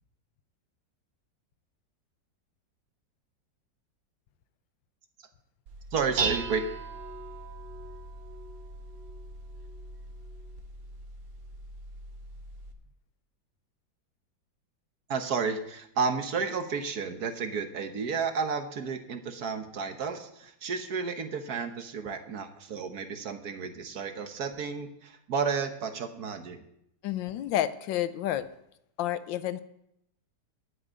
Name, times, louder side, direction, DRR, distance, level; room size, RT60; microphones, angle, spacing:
Dishes pots and pans, 5.7-12.7, right 3 dB, 90° right, 2.0 m, -38 dB
voice 1, 5.9-6.6 15.1-26.6, right 5 dB, 60° right, 7 dB, 1.5 m, -32 dB
voice 2, 27.0-28.5 29.0-29.6, left 12 dB, 85° left, 13 dB, 1.4 m, -30 dB
9.9 x 8.0 x 9.2 m, 0.78 s
omnidirectional pair, 2.0 m